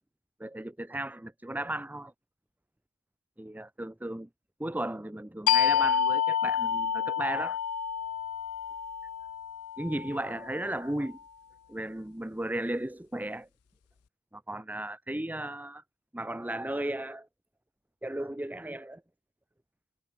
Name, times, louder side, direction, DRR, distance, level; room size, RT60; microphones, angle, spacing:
voice 1, 0.4-2.1 3.4-4.3 4.6-7.6 9.8-11.2 11.7-13.5 14.3-15.8 16.1-17.3 18.0-19.0, right 1 dB, 5° right, 0.6 m, -35 dB
sound 1, 5.5-10.8, left 8 dB, 85° left, 0.6 m, -29 dB
head